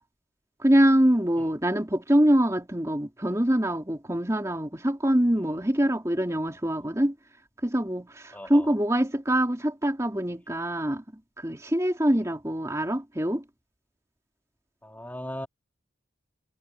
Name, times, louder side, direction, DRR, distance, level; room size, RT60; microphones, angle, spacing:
voice 1, 0.6-7.1 7.6-11.0 11.4-13.4, equal, 15° right, 3.0 m, -24 dB
voice 2, 8.3-8.7 14.8-15.5, left 1 dB, 10° left, 3.1 m, -38 dB
head